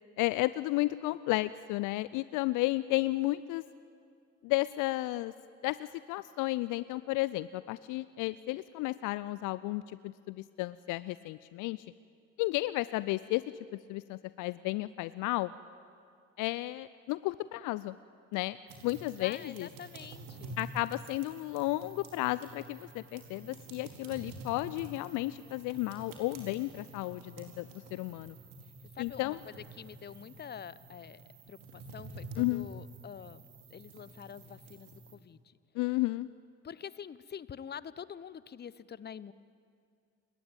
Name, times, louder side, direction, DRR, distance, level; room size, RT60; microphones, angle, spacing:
voice 1, 0.2-3.6 4.4-5.3 5.6-11.9 12.4-13.4 13.9-15.5 16.4-18.0 18.3-18.6 18.8-19.7 20.6-28.4 29.0-29.4 32.4-32.7 35.7-36.3, left 19 dB, 55° left, 17 dB, 0.6 m, -33 dB
sound 1, 18.7-35.1, right 2 dB, 60° right, 4.4 m, -49 dB
voice 2, 19.2-20.6 28.9-33.5 33.7-35.4 36.6-39.3, left 8 dB, 25° left, 19 dB, 0.9 m, -46 dB
28.0 x 22.0 x 8.9 m, 2.3 s
figure-of-eight pair, 55°, 37 cm